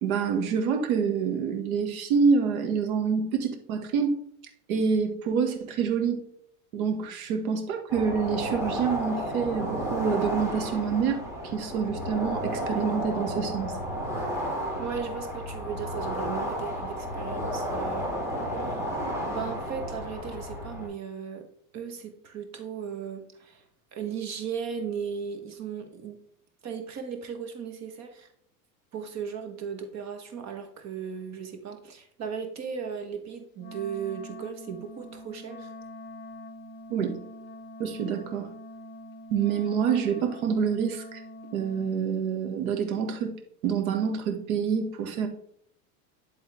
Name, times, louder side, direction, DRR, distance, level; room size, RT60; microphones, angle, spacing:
voice 1, 0.0-4.2 4.7-6.2 6.7-13.7 36.9-37.2 37.8-38.5 39.3-41.2 41.5-43.3 43.6-45.3, right 6 dB, 75° right, 5 dB, 1.6 m, -27 dB
sound 1, 7.9-20.9, equal, 5° right, 2.6 m, -32 dB
voice 2, 14.8-18.1 18.5-18.9 19.3-21.5 21.7-23.6 23.9-26.2 26.6-28.3 28.9-35.7, right 7 dB, 40° right, 6 dB, 1.3 m, -36 dB
Wind instrument woodwind instrument, 33.6-42.0, equal, 25° left, 0.7 m, -44 dB
11.0 x 3.8 x 3.4 m, 0.68 s
supercardioid pair, 105°, 43 cm